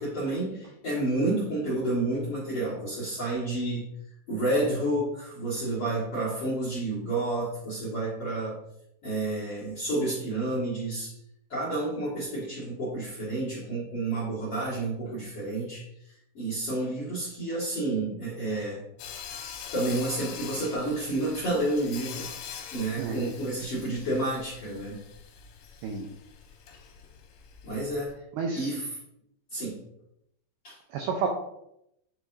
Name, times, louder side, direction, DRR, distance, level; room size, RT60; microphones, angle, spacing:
voice 1, 0.0-3.9 4.3-8.6 9.0-11.2 11.5-18.8 19.3-19.4 19.7-25.0 27.6-28.2 28.5-29.0 29.5-29.8 30.6-30.8, right 2 dB, 55° left, -8 dB, 1.6 m, -30 dB
Sawing, 19.0-28.1, left 7 dB, 75° left, 3.1 m, -43 dB
voice 2, 23.0-23.3 25.8-26.1 28.4-28.7 30.9-31.3, right 5 dB, 85° right, 2 dB, 2.3 m, -30 dB
9.6 x 5.0 x 2.7 m, 0.78 s
omnidirectional pair, 5.5 m